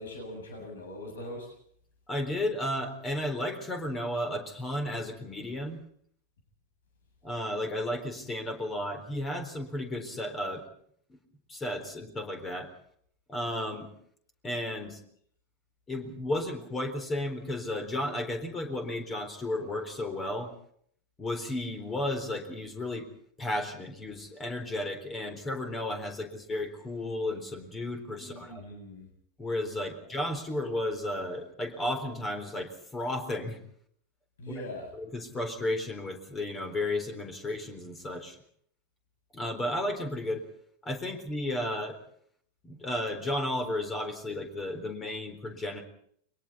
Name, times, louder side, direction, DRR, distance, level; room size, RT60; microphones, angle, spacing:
voice 1, 0.0-1.5 28.2-29.1 29.8-29.9 34.4-34.9, left 1 dB, 65° left, 3 dB, 7.4 m, -41 dB
voice 2, 2.1-5.8 7.2-10.6 11.1-11.2 11.5-12.7 13.3-13.9 14.4-15.0 15.9-20.5 21.2-23.1 23.4-28.6 29.4-33.6 34.5-34.6 34.9-38.4 39.3-40.4 40.8-42.0 42.6-45.8, left 1 dB, 20° left, 7 dB, 4.0 m, -33 dB
30.0 x 23.0 x 4.2 m, 0.63 s
figure-of-eight pair, 90°, 0 cm